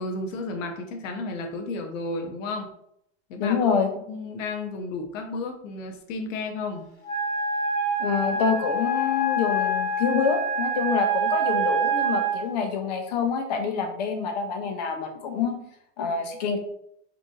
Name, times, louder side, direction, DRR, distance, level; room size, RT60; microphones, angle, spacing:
voice 1, 0.0-2.7 3.3-3.6 4.1-6.9, left 3 dB, 80° left, 4 dB, 0.8 m, -32 dB
voice 2, 3.4-3.9 8.0-15.6 16.0-16.6, left 5 dB, 35° left, 5 dB, 0.4 m, -26 dB
Wind instrument woodwind instrument, 7.0-12.4, right 2 dB, 10° left, 1.3 m, -26 dB
4.9 x 3.1 x 2.3 m, 0.74 s
supercardioid pair, 175°, 38 cm